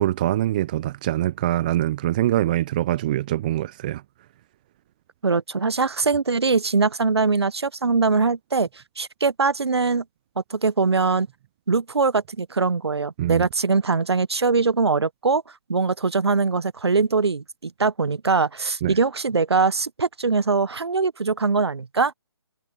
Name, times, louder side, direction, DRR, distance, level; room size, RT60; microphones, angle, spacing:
voice 1, 0.0-4.0 13.2-13.5 18.8-18.9, right 14 dB, 20° right, 0.4 m, -23 dB
voice 2, 5.2-8.7 9.0-10.0 10.5-11.3 11.7-15.4 15.7-22.1, right 4 dB, 80° right, 1.0 m, -22 dB
figure-of-eight pair, 150°, 14 cm